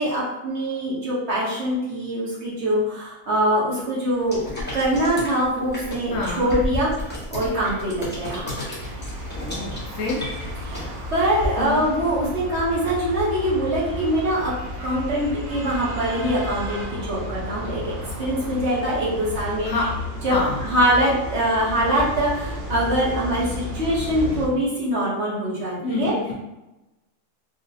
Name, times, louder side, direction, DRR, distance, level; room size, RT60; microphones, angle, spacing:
voice 1, 0.0-6.9 7.3-8.5 10.6-14.5 14.8-17.9 18.2-19.7 20.2-20.4 20.6-26.1, right 1 dB, 50° right, -7 dB, 1.1 m, -23 dB
sound 1, 4.3-11.5, left 1 dB, 10° left, 0.8 m, -33 dB
voice 2, 6.1-6.6 9.3-10.2 11.6-11.9 19.6-19.8 20.3-20.6 25.8-26.3, left 3 dB, 65° left, -3 dB, 1.0 m, -28 dB
sound 2, 8.8-24.5, left 1 dB, 80° right, 1.2 m, -33 dB
3.9 x 2.0 x 2.6 m, 0.97 s
omnidirectional pair, 1.6 m